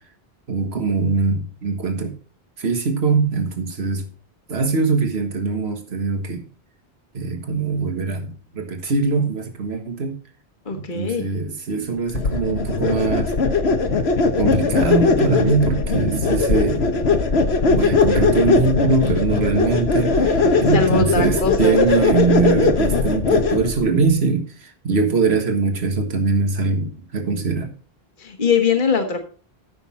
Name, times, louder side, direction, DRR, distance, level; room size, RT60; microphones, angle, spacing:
voice 1, 0.5-2.2 2.6-4.1 4.5-6.4 7.1-10.2 10.7-13.3 14.4-16.9 17.7-27.7, right 4 dB, 80° right, 5 dB, 1.8 m, -22 dB
voice 2, 10.6-11.3 20.7-22.1 28.2-29.3, left 5 dB, 50° left, 5 dB, 1.6 m, -22 dB
sound 1, 12.1-23.8, left 4 dB, 80° left, 1.5 m, -19 dB
14.0 x 6.4 x 4.2 m, 0.38 s
omnidirectional pair, 1.1 m